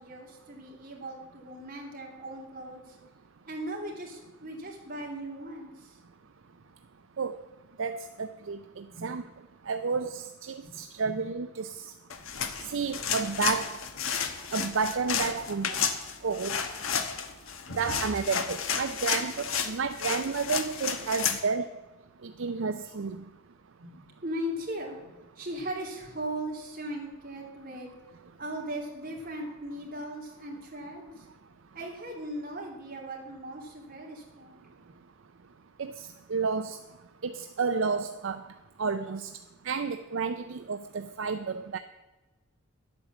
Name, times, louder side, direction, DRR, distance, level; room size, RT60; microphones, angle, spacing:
voice 1, 0.0-3.0 3.5-6.0 8.9-9.1 10.6-10.8 11.0-11.3 23.8-27.9 28.4-31.3 31.7-34.7, right 1 dB, 40° right, -1 dB, 3.0 m, -38 dB
voice 2, 7.8-9.3 9.7-11.8 12.7-13.8 14.5-15.8 16.2-16.6 17.8-21.7 22.2-23.2 35.8-36.8 37.2-38.4 38.8-39.3 39.6-41.8, right 5 dB, 65° right, 10 dB, 0.5 m, -31 dB
sound 1, 12.1-21.4, left 7 dB, 70° left, 1.1 m, -32 dB
11.0 x 8.7 x 7.2 m, 1.2 s
head